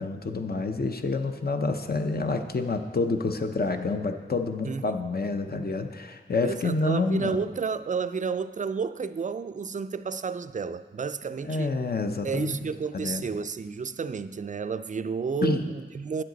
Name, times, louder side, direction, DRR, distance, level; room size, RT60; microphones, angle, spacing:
voice 1, 0.0-7.4 11.4-12.6 12.9-13.3 15.4-15.6, left 3 dB, 50° left, 6 dB, 0.7 m, -28 dB
voice 2, 4.6-5.0 6.4-11.7 12.2-16.2, right 5 dB, 40° right, 12 dB, 0.4 m, -31 dB
9.5 x 7.6 x 4.0 m, 1.4 s
cardioid pair, 50°, 20 cm